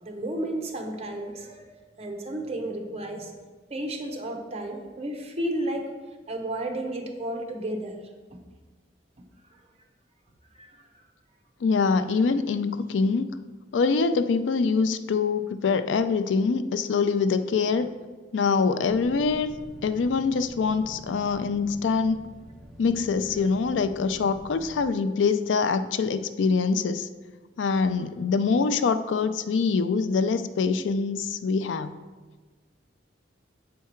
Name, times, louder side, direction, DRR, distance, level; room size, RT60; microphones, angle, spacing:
voice 1, 0.0-3.3 3.7-5.9 6.3-8.0 10.5-10.8, right 1 dB, 35° right, 3 dB, 0.9 m, -32 dB
voice 2, 11.6-13.3 13.7-17.9 18.3-19.5 19.8-22.3 22.8-27.1 27.6-32.0, left 4 dB, 85° left, 11 dB, 0.4 m, -24 dB
sound 1, 18.8-24.9, left 1 dB, ahead, 0.9 m, -46 dB
7.4 x 4.7 x 4.4 m, 1.3 s
head